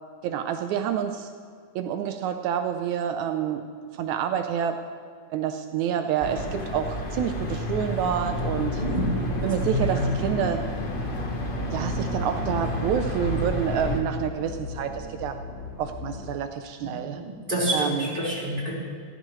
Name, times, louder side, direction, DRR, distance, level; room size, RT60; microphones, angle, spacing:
voice 1, 0.2-1.3 1.8-3.6 3.9-4.8 5.3-8.8 9.4-10.7 11.7-15.4 15.8-17.2 17.7-18.1, right 9 dB, 80° right, 6 dB, 2.1 m, -28 dB
sound 1, 6.2-14.0, left 1 dB, 75° left, 0.4 m, -31 dB
sound 2, 8.3-16.3, left 4 dB, 25° left, 3.5 m, -36 dB
voice 2, 8.8-9.1 9.6-10.1 16.8-18.7, right 1 dB, 15° right, -6 dB, 4.7 m, -28 dB
28.5 x 14.5 x 3.2 m, 2.1 s
omnidirectional pair, 3.3 m